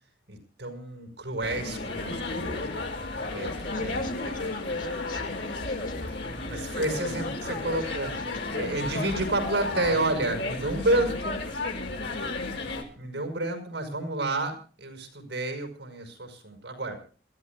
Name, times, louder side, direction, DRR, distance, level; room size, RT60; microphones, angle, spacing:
voice 1, 0.3-2.9 3.3-4.4 6.5-8.1 8.5-11.4 13.0-17.0, right 2 dB, 70° right, 6 dB, 5.8 m, -30 dB
sound 1, 1.4-12.8, left 2 dB, 90° left, 5.7 m, -33 dB
voice 2, 3.3-6.8 7.2-9.0, left 2 dB, 50° left, 5 dB, 2.6 m, -43 dB
27.5 x 15.0 x 2.4 m, 0.39 s
head